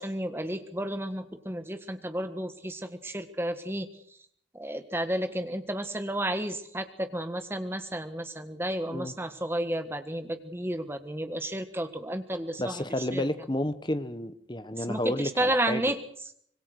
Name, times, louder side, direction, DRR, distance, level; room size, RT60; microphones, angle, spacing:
voice 1, 0.0-3.9 4.5-12.8 13.1-13.3 14.8-16.0, right 1 dB, 10° right, 9 dB, 1.6 m, -32 dB
voice 2, 12.6-15.8, left 1 dB, 25° left, 13 dB, 1.1 m, -31 dB
25.5 x 21.5 x 6.5 m, 0.65 s
head